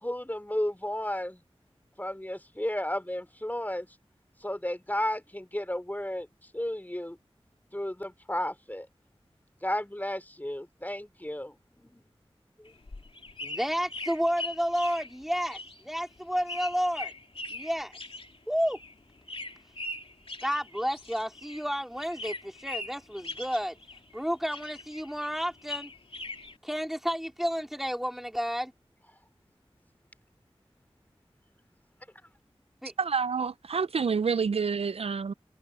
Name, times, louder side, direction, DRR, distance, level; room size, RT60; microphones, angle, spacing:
voice 1, 0.0-1.4 2.0-3.9 4.4-6.3 6.5-7.2 7.7-8.9 9.6-12.0 12.6-12.7, left 1 dB, 15° left, 3.7 m, -33 dB
sound 1, 12.7-21.7 22.0-24.2 24.5-26.5, left 2 dB, 65° left, 2.4 m, -41 dB
voice 2, 13.4-17.1 17.5-17.9 18.5-18.8 20.4-23.8 24.1-25.9 26.6-28.7 32.8-32.9, equal, 5° right, 4.1 m, -31 dB
voice 3, 33.0-35.3, right 5 dB, 75° right, 0.4 m, -28 dB
wide cardioid pair, 40°, 10 cm